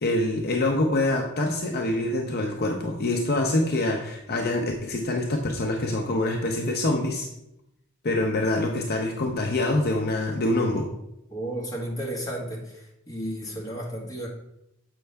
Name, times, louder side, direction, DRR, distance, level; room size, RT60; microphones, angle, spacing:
voice 1, 0.0-7.3 8.0-10.9, left 2 dB, 50° left, 2 dB, 0.7 m, -25 dB
voice 2, 11.3-14.3, right 1 dB, 15° left, -4 dB, 1.7 m, -33 dB
7.5 x 5.4 x 3.4 m, 0.83 s
head